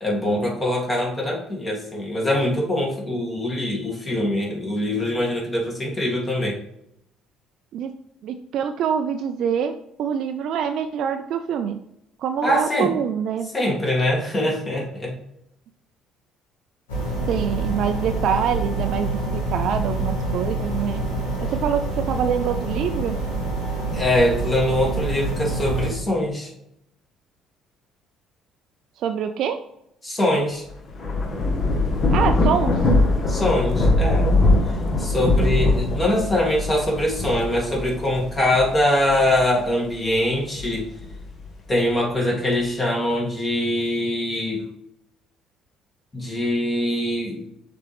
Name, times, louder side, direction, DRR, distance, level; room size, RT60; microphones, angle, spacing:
voice 1, 0.0-6.6 12.4-12.9 13.5-15.1 23.9-26.5 30.0-30.6 33.3-34.3 35.0-40.9 41.7-44.6 46.1-47.4, left 1 dB, 25° left, -2 dB, 2.2 m, -23 dB
voice 2, 8.2-9.7 10.0-11.8 12.2-13.5 17.3-21.0 21.5-23.2 29.0-29.6 32.1-32.8, right 8 dB, 55° right, 7 dB, 0.4 m, -25 dB
sound 1, 16.9-25.9, right 2 dB, 75° left, 2.4 m, -26 dB
Thunder / Rain, 30.7-39.6 40.2-41.5, left 2 dB, 45° left, 1.2 m, -22 dB
6.7 x 4.3 x 3.4 m, 0.78 s
figure-of-eight pair, 50°, 0 cm